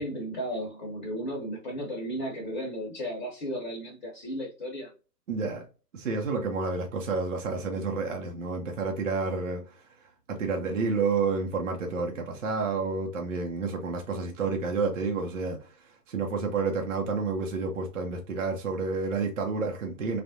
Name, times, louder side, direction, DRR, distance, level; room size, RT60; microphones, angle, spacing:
voice 1, 0.0-4.9, equal, 30° left, 1.0 m, -34 dB
voice 2, 5.3-5.7 5.9-9.8 10.3-20.2, right 4 dB, 50° right, 0.8 m, -30 dB
3.5 x 2.5 x 2.6 m
figure-of-eight pair, 135°, 50 cm